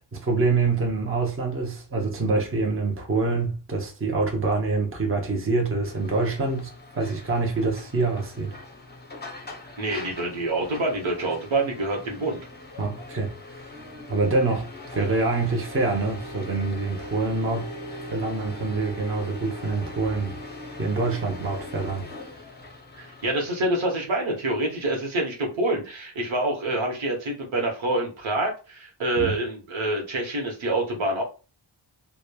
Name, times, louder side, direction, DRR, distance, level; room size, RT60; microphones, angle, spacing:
voice 1, 0.1-6.7 6.9-8.5 12.8-13.3 14.1-17.7 18.1-20.3 20.8-22.0 29.2-29.3, right 3 dB, 30° right, 0.7 m, -25 dB
sound 1, 5.8-23.5, left 1 dB, 20° left, 0.6 m, -41 dB
voice 2, 9.8-12.4 22.9-31.2, right 2 dB, 85° right, 1.0 m, -26 dB
3.0 x 2.2 x 2.2 m
wide cardioid pair, 110°, 46 cm